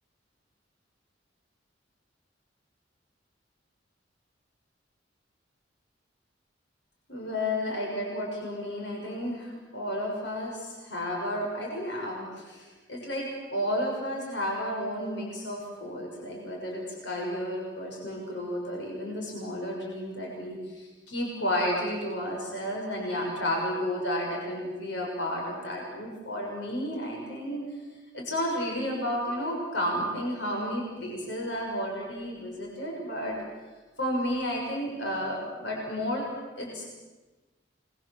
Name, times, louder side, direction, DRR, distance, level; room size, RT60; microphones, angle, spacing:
voice 1, 7.1-27.6 28.1-33.4 34.0-36.3 36.6-36.8, equal, 70° left, -1 dB, 6.4 m, -32 dB
29.5 x 22.0 x 7.4 m, 1.2 s
head